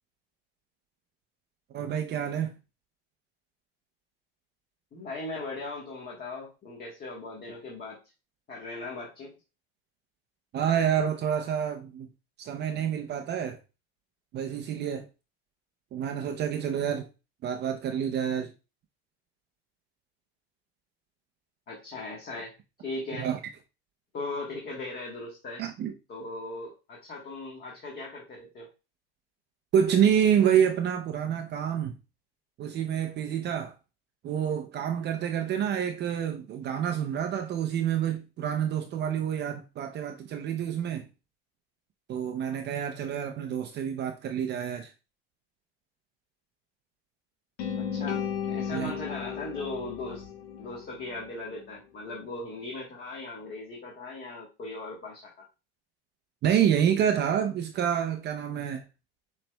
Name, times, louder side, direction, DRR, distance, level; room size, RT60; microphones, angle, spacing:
voice 1, 1.7-2.5 10.5-12.1 12.4-13.6 14.3-15.1 15.9-17.0 17.4-18.5 23.2-23.4 25.6-25.9 29.7-31.9 32.6-33.7 34.2-41.0 42.1-44.9 48.7-48.9 56.4-58.8, right 9 dB, 35° right, 0.6 m, -28 dB
voice 2, 4.9-8.0 8.5-9.3 21.7-22.5 22.8-23.3 24.1-25.6 26.1-28.7 47.8-50.3 50.6-55.5, left 2 dB, 30° left, 1.3 m, -38 dB
sound 1, 47.6-51.7, left 7 dB, 90° left, 1.2 m, -35 dB
7.0 x 3.2 x 2.2 m
supercardioid pair, 130°, 31 cm